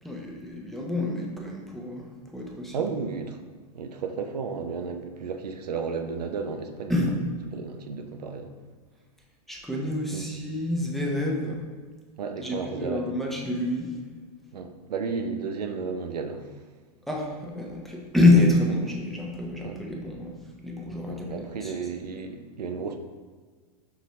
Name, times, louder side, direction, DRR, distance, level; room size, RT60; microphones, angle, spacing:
voice 1, 0.0-3.1 6.9-7.2 9.5-11.6 12.4-13.9 17.1-20.4 20.6-21.3 21.6-21.7, left 2 dB, ahead, -2 dB, 0.6 m, -27 dB
voice 2, 2.7-3.4 3.7-6.9 7.5-8.5 10.1-10.3 12.2-13.0 14.5-16.5 19.6-19.8 21.1-23.0, right 5 dB, 90° right, 5 dB, 0.5 m, -33 dB
5.8 x 2.7 x 3.1 m, 1.5 s
hypercardioid pair, 105°, 20 cm